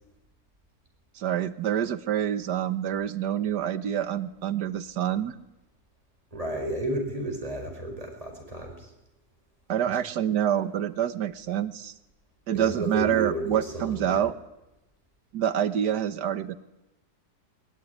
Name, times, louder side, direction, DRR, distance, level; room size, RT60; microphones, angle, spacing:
voice 1, 1.2-5.4 9.7-11.9 12.5-14.3 15.3-16.5, right 10 dB, 85° right, 14 dB, 1.7 m, -27 dB
voice 2, 6.3-8.9 9.9-10.0 12.5-14.2, right 1 dB, 20° right, 2 dB, 5.7 m, -32 dB
22.0 x 21.0 x 9.9 m, 0.95 s
omnidirectional pair, 1.7 m